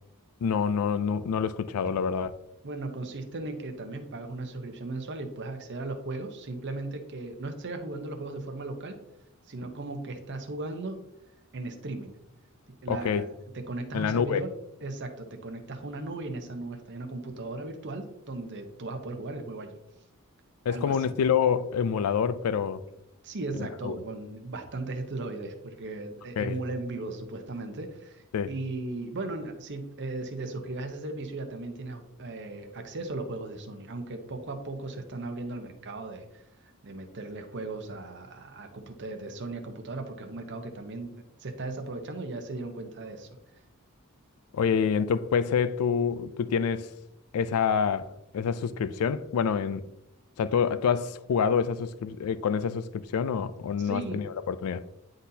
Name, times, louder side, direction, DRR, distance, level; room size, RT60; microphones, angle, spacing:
voice 1, 0.4-2.3 12.9-13.2 13.9-14.4 20.7-22.8 23.6-23.9 26.4-26.6 28.3-28.5 44.5-46.9 47.3-48.1 48.3-49.8 50.4-54.8, left 6 dB, 80° left, 0.4 m, -27 dB
voice 2, 2.6-9.0 9.5-11.0 11.5-12.1 12.8-13.3 13.5-14.5 14.8-19.7 20.7-21.1 23.2-36.4 36.8-43.3 53.8-54.2, right 2 dB, 55° right, 0.9 m, -37 dB
10.0 x 3.9 x 2.7 m
head